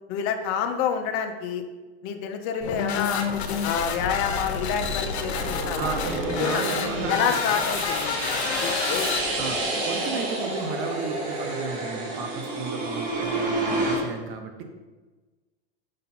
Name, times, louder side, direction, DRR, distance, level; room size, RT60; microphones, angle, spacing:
voice 1, 0.1-1.6 2.0-3.2 3.6-6.0 6.3-6.6 7.1-9.2, left 7 dB, 45° left, 5 dB, 0.9 m, -28 dB
sound 1, 2.6-9.6, left 6 dB, 90° left, 1.0 m, -29 dB
sound 2, 3.9-14.0, right 2 dB, 70° right, 2.2 m, -30 dB
voice 2, 5.8-7.3 9.4-14.6, right 5 dB, 40° right, 5 dB, 1.1 m, -34 dB
6.4 x 5.1 x 4.3 m, 1.3 s
supercardioid pair, 135°, 32 cm